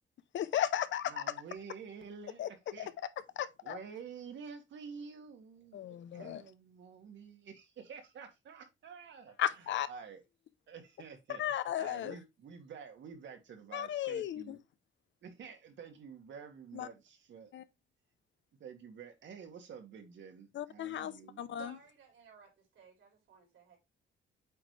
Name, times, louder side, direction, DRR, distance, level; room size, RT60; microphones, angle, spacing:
voice 1, 0.3-1.2 2.4-2.5 2.8-2.9 3.4-3.8 5.7-6.4 9.4-9.9 11.4-12.1 13.7-14.6 16.7-16.9 17.5-17.6 20.5-21.7, left 11 dB, 70° left, 0.7 m, -35 dB
voice 2, 1.0-2.4 2.7-2.9 3.6-10.2 10.7-11.4 11.8-14.6 15.2-17.5 18.6-21.5, right 6 dB, 65° right, 1.9 m, -49 dB
voice 3, 21.6-23.8, right 6 dB, 85° right, 4.2 m, -57 dB
8.7 x 4.0 x 3.3 m
cardioid pair, 140°, 20 cm